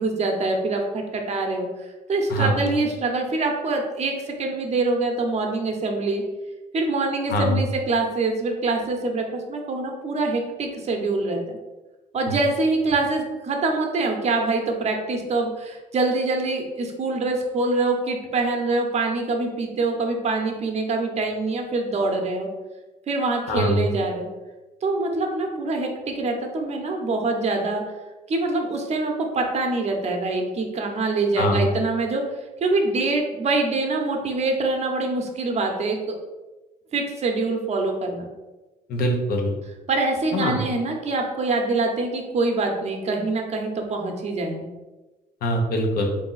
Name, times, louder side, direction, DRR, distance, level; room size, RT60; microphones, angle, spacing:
voice 1, 0.0-1.7 2.1-6.2 6.7-11.6 12.1-22.5 23.1-24.3 24.8-25.9 26.1-27.8 28.3-32.2 32.6-36.1 36.9-38.3 39.9-44.7, right 3 dB, 40° right, 3 dB, 0.8 m, -24 dB
voice 2, 7.3-7.6 12.3-12.4 23.5-23.9 31.4-31.7 38.9-39.5 40.3-40.6 45.4-46.1, equal, 65° left, 2 dB, 0.9 m, -23 dB
3.6 x 2.7 x 3.9 m, 1.1 s
cardioid pair, 110°, 17 cm